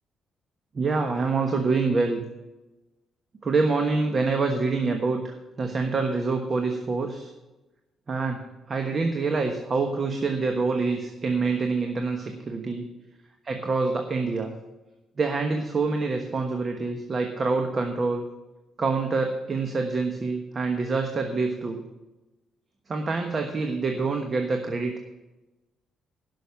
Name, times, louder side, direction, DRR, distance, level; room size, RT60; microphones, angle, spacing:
voice 1, 0.7-2.2 3.4-7.3 8.1-8.4 8.7-12.8 13.5-14.5 15.2-18.2 18.8-21.8 22.9-25.1, right 4 dB, 40° right, 4 dB, 1.2 m, -26 dB
11.5 x 6.3 x 7.1 m, 1.1 s
cardioid pair, 90°, 0 cm